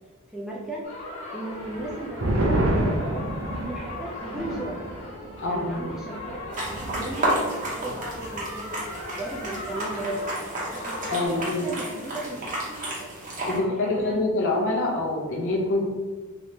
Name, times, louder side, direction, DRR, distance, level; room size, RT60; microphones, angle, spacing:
voice 1, 0.3-0.8 1.3-4.8 5.5-6.4 6.9-8.8 9.1-10.4 10.7-13.1 13.5-14.5, right 1 dB, ahead, -5 dB, 0.4 m, -36 dB
sound 1, 0.8-11.3, left 2 dB, 25° left, 1.2 m, -39 dB
sound 2, 1.6-8.5 8.8-8.9 9.3-9.8, right 1 dB, 60° right, 0.6 m, -30 dB
voice 2, 5.4-5.9 11.1-11.7 13.5-15.9, left 2 dB, 55° left, -1 dB, 0.6 m, -25 dB
sound 3, 6.5-13.6, right 1 dB, 35° right, 0.8 m, -32 dB
3.1 x 3.0 x 2.7 m, 1.3 s
head